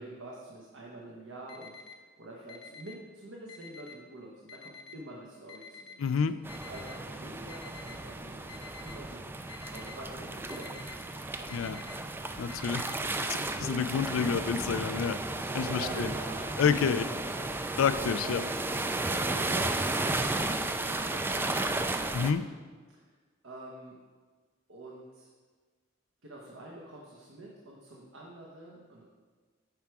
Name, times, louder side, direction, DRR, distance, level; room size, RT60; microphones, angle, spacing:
voice 1, 0.0-6.3 6.7-10.9 11.2-12.7 13.6-13.8 15.6-17.5 17.8-18.6 19.1-19.7 20.8-21.7 22.9-23.0 23.4-23.9 24.7-25.3 26.2-29.0, right 1 dB, 75° right, -3 dB, 1.1 m, -46 dB
Alarm, 1.5-1.9 2.5-2.9 3.5-3.9 4.5-4.9 5.5-5.9 6.5-6.9 7.5-7.9 8.5-8.9 9.5-9.9 10.5-11.0 11.5-11.9 12.5-12.9, left 6 dB, 65° left, 0.8 m, -48 dB
voice 2, 6.0-6.4 11.5-11.8 12.4-15.2 15.5-16.1 16.6-17.0 17.8-18.4 22.1-22.4, left 6 dB, 90° left, 13 dB, 0.4 m, -29 dB
sound 1, 6.4-22.3, right 2 dB, 10° right, 0.3 m, -34 dB
9.5 x 4.6 x 4.8 m, 1.4 s
head